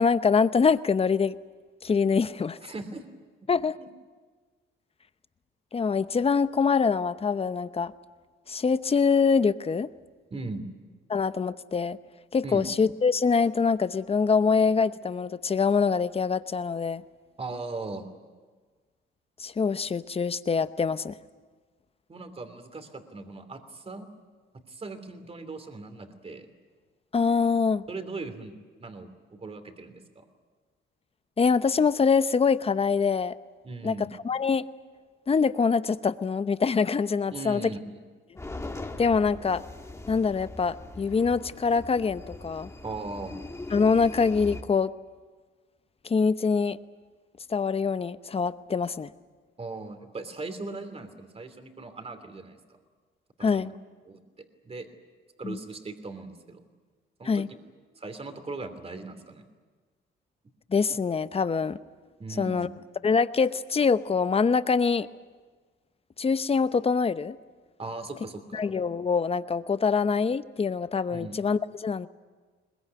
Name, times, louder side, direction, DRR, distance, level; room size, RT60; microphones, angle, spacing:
voice 1, 0.0-1.3 1.8-2.6 3.5-3.8 5.7-7.9 8.5-9.9 11.1-12.0 12.3-17.0 19.4-21.2 27.1-27.8 31.4-33.3 33.8-34.0 34.2-34.7 35.3-37.6 39.0-39.6 40.1-42.7 43.7-44.9 46.0-46.8 47.5-49.1 53.4-53.7 55.4-55.6 57.3-57.5 60.7-61.8 62.4-62.7 63.0-65.1 66.2-67.4 68.5-72.1, left 5 dB, 30° left, 13 dB, 0.8 m, -24 dB
voice 2, 2.6-3.1 3.8-3.9 10.3-10.7 12.4-12.7 17.4-18.1 22.1-24.1 24.7-26.5 27.9-28.5 28.8-30.2 33.6-34.1 37.3-38.0 42.8-43.3 49.6-52.6 53.4-53.7 54.0-54.2 54.6-54.9 55.4-56.6 57.2-57.4 58.0-59.4 62.2-62.7 67.8-68.6 71.1-71.4, right 3 dB, 30° right, 7 dB, 2.9 m, -38 dB
sound 1, 38.4-44.6, left 2 dB, 15° left, 1.8 m, -40 dB
22.0 x 21.0 x 9.3 m, 1.4 s
cardioid pair, 90°, 20 cm